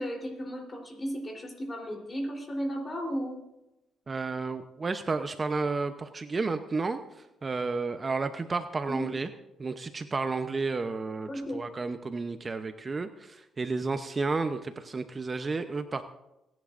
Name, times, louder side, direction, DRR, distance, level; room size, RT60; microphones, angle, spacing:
voice 1, 0.0-3.4 8.9-9.1 11.3-11.6, equal, 30° left, 2 dB, 3.6 m, -34 dB
voice 2, 4.1-9.3 9.6-16.0, right 3 dB, 30° right, 8 dB, 0.7 m, -32 dB
28.5 x 10.5 x 2.6 m, 0.92 s
cardioid pair, 90°, 0 cm